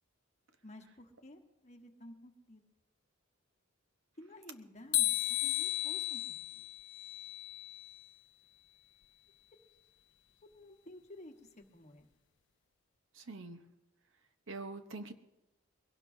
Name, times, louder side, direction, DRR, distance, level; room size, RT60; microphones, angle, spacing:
voice 1, 0.6-2.6 4.2-6.7 10.4-12.1, left 1 dB, 35° left, 4 dB, 1.3 m, -53 dB
sound 1, 4.9-8.0, left 15 dB, 60° left, 0.4 m, -34 dB
voice 2, 13.1-13.6 14.5-15.1, right 3 dB, 65° right, 8 dB, 0.9 m, -44 dB
22.0 x 17.5 x 2.7 m, 0.96 s
head